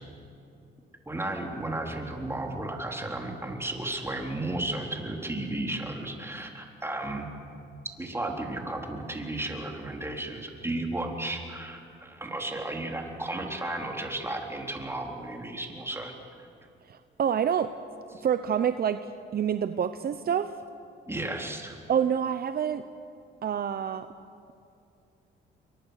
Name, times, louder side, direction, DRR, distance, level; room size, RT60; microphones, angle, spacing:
voice 1, 1.1-7.3 8.0-16.1 18.1-18.2 21.1-21.8, right 2 dB, 10° right, 1 dB, 3.9 m, -34 dB
voice 2, 16.9-17.7 18.2-19.0 19.3-20.5 21.9-22.8 23.4-24.1, right 8 dB, 50° right, 10 dB, 0.9 m, -27 dB
28.5 x 23.5 x 6.6 m, 2.6 s
cardioid pair, 90°, 20 cm